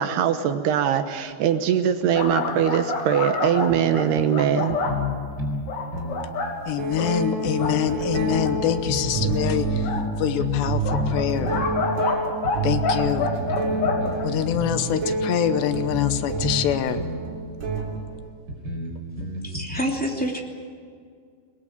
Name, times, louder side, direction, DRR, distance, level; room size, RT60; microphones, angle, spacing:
voice 1, 0.0-4.8, right 9 dB, 75° right, 8 dB, 2.8 m, -22 dB
sound 1, 2.1-5.0 5.7-6.5 7.0-7.1 7.5-7.8 8.4-8.5 9.8-10.0 10.8-12.6 12.8-14.2, left 3 dB, 55° left, 4.0 m, -27 dB
sound 2, 2.5-2.6 4.1-4.2 6.0-6.1 6.7-18.3, right 3 dB, 40° right, 3.8 m, -29 dB
sound 3, 3.7-3.8 4.2-4.3 4.7-5.7 5.9-6.2 6.9-7.0 7.4-9.3 9.7-9.8 10.4-10.7 10.9-11.7 12.4-12.5 13.0-14.8 15.2-15.3 15.7-16.7 17.0-17.2 18.0-18.1 18.5-19.8, left 2 dB, 25° right, 4.3 m, -30 dB
voice 2, 6.7-9.9 10.2-11.5 12.6-13.3 14.2-17.0, left 11 dB, 75° left, 10 dB, 3.0 m, -25 dB
voice 3, 19.4-20.4, equal, 5° left, -1 dB, 1.6 m, -27 dB
21.5 x 21.5 x 8.7 m, 2.1 s
omnidirectional pair, 5.2 m